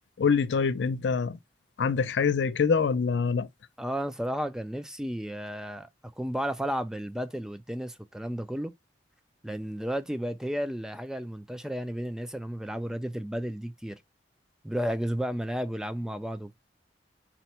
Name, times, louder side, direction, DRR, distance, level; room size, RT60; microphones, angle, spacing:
voice 1, 0.2-1.4 1.8-3.5, left 5 dB, 90° left, 0.4 m, -25 dB
voice 2, 3.8-5.9 6.2-8.7 9.4-14.0 14.6-16.5, equal, 5° right, 0.3 m, -33 dB
4.2 x 2.1 x 4.2 m
head